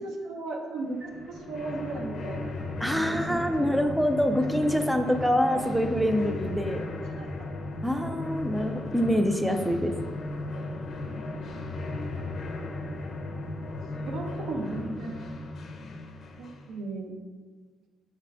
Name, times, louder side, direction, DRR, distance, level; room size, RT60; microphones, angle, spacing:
voice 1, 0.0-2.5 2.9-3.8 4.4-4.5 7.2-7.3 14.0-15.2 16.4-17.1, right 3 dB, 80° right, 2 dB, 0.6 m, -36 dB
sound 1, 0.9-16.7, left 2 dB, 60° left, 0.5 m, -36 dB
voice 2, 2.8-6.9 7.8-9.9, equal, 5° right, 6 dB, 0.3 m, -25 dB
5.7 x 2.4 x 3.3 m, 1.4 s
cardioid pair, 90°, 0 cm